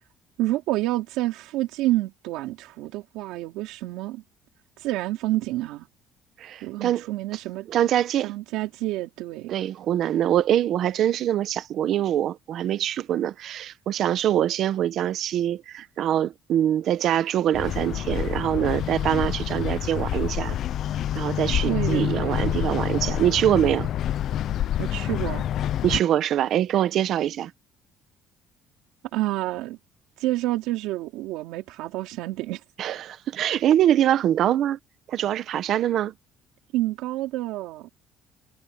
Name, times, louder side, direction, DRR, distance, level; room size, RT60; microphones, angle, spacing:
voice 1, 0.4-4.2 4.8-5.9 6.6-7.7 8.2-9.5 21.6-22.4 24.8-25.5 25.9-26.0 29.1-29.8 30.2-32.6 36.7-37.9, right 17 dB, 80° right, 3.4 m, -28 dB
voice 2, 6.4-7.0 7.7-8.3 9.5-20.6 21.1-23.9 25.8-27.5 32.8-34.8 35.1-36.1, right 11 dB, 45° right, 1.1 m, -24 dB
sound 1, 17.5-26.0, left 11 dB, 45° left, 0.5 m, -27 dB
cardioid pair, 170°, 0 cm